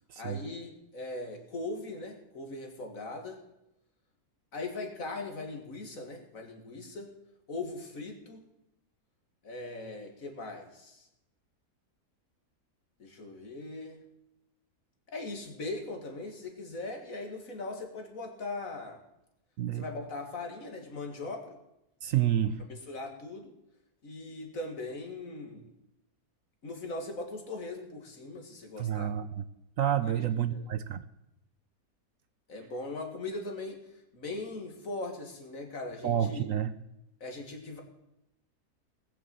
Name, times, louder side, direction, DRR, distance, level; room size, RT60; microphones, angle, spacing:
voice 1, 0.2-3.4 4.5-7.1 7.5-8.4 9.4-11.1 13.0-14.0 15.1-19.0 19.7-21.6 22.7-23.5 24.0-25.7 26.6-29.1 30.0-30.2 30.5-30.7 32.5-33.8 34.1-36.5 37.2-37.8, left 2 dB, 60° left, 4 dB, 2.5 m, -40 dB
voice 2, 22.0-22.6 28.8-29.4 29.8-31.0 36.0-36.7, right 10 dB, 65° right, 12 dB, 1.0 m, -29 dB
19.0 x 6.8 x 7.8 m, 0.86 s
omnidirectional pair, 1.6 m